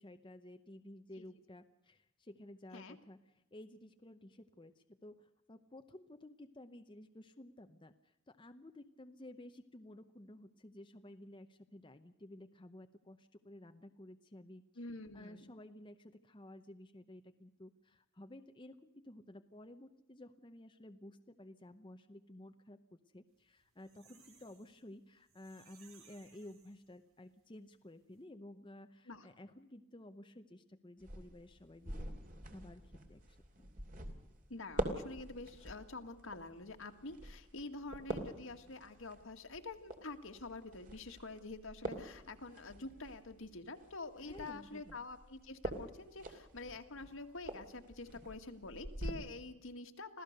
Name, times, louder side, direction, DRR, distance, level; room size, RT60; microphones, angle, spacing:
voice 1, 0.0-14.6 15.1-32.1 32.4-33.7 44.2-45.0, left 1 dB, 25° left, 7 dB, 0.8 m, -54 dB
voice 2, 14.8-15.6 29.1-29.3 34.5-50.2, left 3 dB, 70° left, 6 dB, 1.9 m, -47 dB
sound 1, 23.4-27.3 27.7-27.8 28.0-28.2, right 6 dB, 85° right, 5.0 m, -65 dB
sound 2, 31.0-49.1, right 1 dB, 40° right, 2.9 m, -46 dB
26.0 x 16.5 x 6.7 m, 0.89 s
head